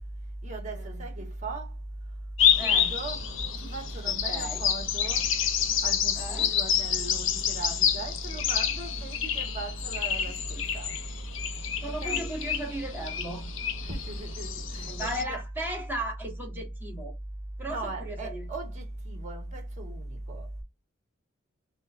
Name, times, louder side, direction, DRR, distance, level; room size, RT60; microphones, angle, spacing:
voice 1, 0.4-1.7 2.6-3.2 3.6-5.3 5.8-10.9 12.0-12.5 13.9-15.4 17.7-20.5, right 2 dB, 40° right, 1.4 m, -37 dB
sound 1, 2.4-15.2, left 8 dB, 75° left, 0.6 m, -28 dB
voice 2, 2.6-2.9 4.0-4.6 6.2-6.5 11.8-13.5 14.9-17.1 17.6-18.4, right 1 dB, 10° right, 1.3 m, -36 dB
5.4 x 2.2 x 2.5 m
head